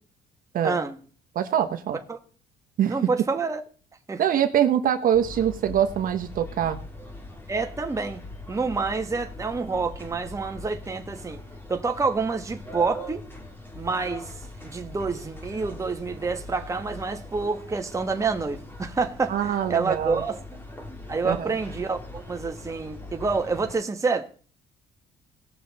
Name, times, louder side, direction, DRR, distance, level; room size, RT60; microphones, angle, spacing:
voice 1, 0.6-1.0 2.1-2.2 2.9-3.6 4.1-4.2 7.5-8.2 8.5-11.4 11.7-13.3 13.7-14.3 14.6-20.4 21.1-24.3, right 4 dB, 20° right, 1.3 m, -28 dB
voice 2, 1.3-2.0 2.8-3.0 4.2-6.8 19.3-20.2 21.2-21.5, right 9 dB, 55° right, 1.1 m, -24 dB
sound 1, 5.1-23.8, left 2 dB, 10° left, 2.3 m, -41 dB
18.5 x 6.6 x 4.1 m
cardioid pair, 110°, 17 cm